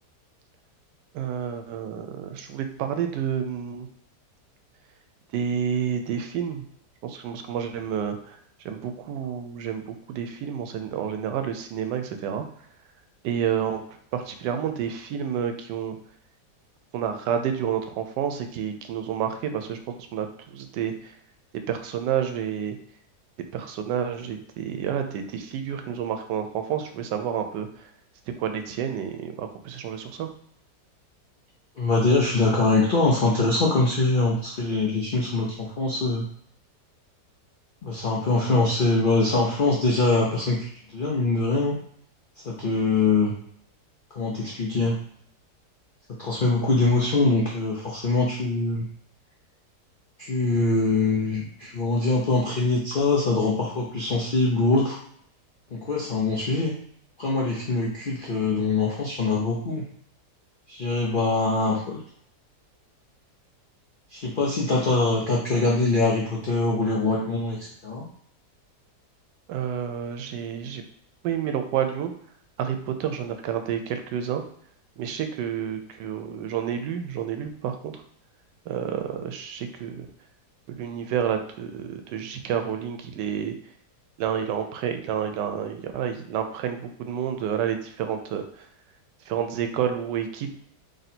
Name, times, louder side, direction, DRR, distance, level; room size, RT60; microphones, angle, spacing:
voice 1, 1.1-3.9 5.3-6.7 7.0-8.4 8.6-12.4 13.2-13.8 14.1-16.0 16.9-21.1 21.7-22.8 23.5-27.7 28.4-30.3 69.5-70.8 71.2-72.1 72.6-74.4 75.0-77.9 78.7-80.1 80.7-83.5 84.2-88.5 89.3-90.6, right 8 dB, 85° right, 7 dB, 1.2 m, -29 dB
voice 2, 31.8-36.3 37.8-41.7 42.4-43.3 44.1-44.9 46.2-48.9 50.2-55.0 55.7-56.7 57.2-59.8 60.7-62.0 64.1-68.0, left 3 dB, 75° left, -4 dB, 0.4 m, -23 dB
3.2 x 2.8 x 4.1 m, 0.65 s
omnidirectional pair, 1.8 m